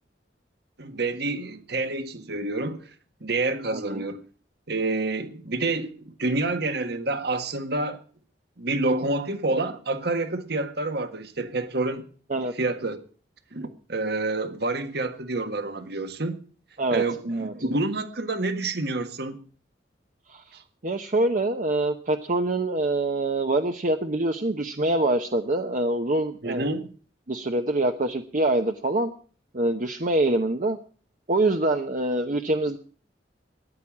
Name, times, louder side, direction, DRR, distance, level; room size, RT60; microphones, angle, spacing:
voice 1, 0.8-2.8 3.2-4.2 4.7-8.0 8.6-12.1 12.6-13.0 13.5-16.4 16.9-19.4 20.5-20.6 26.4-26.9, right 2 dB, 60° right, 1.6 m, -28 dB
voice 2, 3.7-4.0 12.3-12.5 16.8-17.0 17.4-17.5 20.3-20.4 20.8-26.6 27.3-29.1 29.5-30.8 31.3-32.8, right 2 dB, 45° right, 0.9 m, -25 dB
14.5 x 10.5 x 7.3 m
head